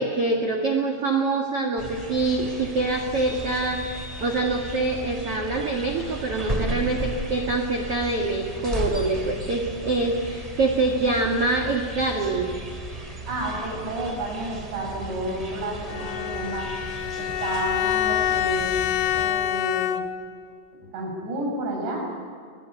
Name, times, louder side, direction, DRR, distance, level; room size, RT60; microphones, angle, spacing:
voice 1, 0.0-3.8 4.2-12.5, right 3 dB, 50° right, 2 dB, 1.8 m, -25 dB
sound 1, 1.8-19.2, right 1 dB, 10° right, 2.2 m, -35 dB
voice 2, 13.3-16.7 17.2-18.8 19.1-20.0 20.9-22.0, right 1 dB, 70° right, 1 dB, 7.9 m, -31 dB
Bowed string instrument, 15.9-20.4, left 11 dB, 85° left, 3.5 m, -26 dB
21.5 x 21.5 x 9.9 m, 2.2 s
omnidirectional pair, 5.3 m